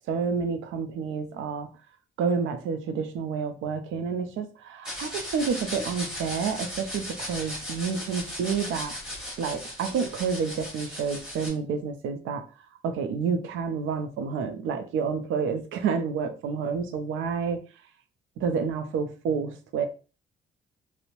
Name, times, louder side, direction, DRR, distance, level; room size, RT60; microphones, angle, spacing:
voice 1, 0.1-1.7 2.2-8.9 9.4-12.4 12.8-17.6 18.4-19.9, right 6 dB, 80° right, 8 dB, 0.5 m, -29 dB
sound 1, 4.8-11.5, left 1 dB, 5° right, 1.2 m, -37 dB
2.6 x 2.0 x 2.9 m, 0.35 s
cardioid pair, 90°, 20 cm